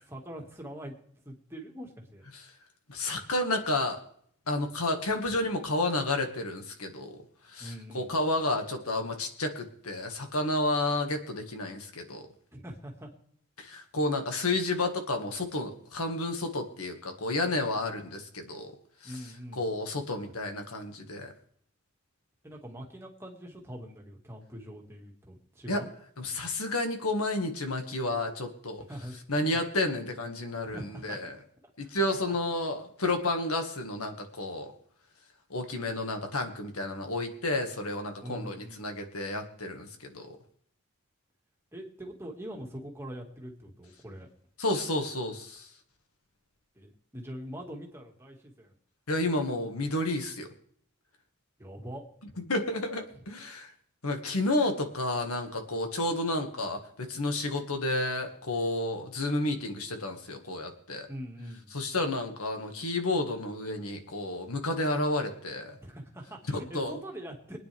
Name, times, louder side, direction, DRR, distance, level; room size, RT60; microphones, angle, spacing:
voice 1, 0.1-1.0 1.2-2.2 7.6-8.1 12.5-13.1 19.0-19.6 20.3-20.4 22.4-25.9 28.8-29.1 30.6-31.2 31.8-31.9 38.2-38.9 41.7-44.3 46.8-48.7 51.6-52.0 61.1-61.7 65.8-67.6, equal, 10° right, 0 dB, 1.9 m, -43 dB
voice 2, 2.9-4.0 4.5-7.2 7.5-12.3 13.6-18.7 19.0-19.1 19.6-21.3 25.7-25.8 26.2-28.8 29.3-31.3 31.8-34.7 35.5-40.4 44.6-45.7 49.1-50.5 52.5-53.7 54.0-61.1 61.7-65.8 66.5-67.0, left 2 dB, 85° left, 5 dB, 1.8 m, -31 dB
24.0 x 9.5 x 3.5 m, 0.64 s
head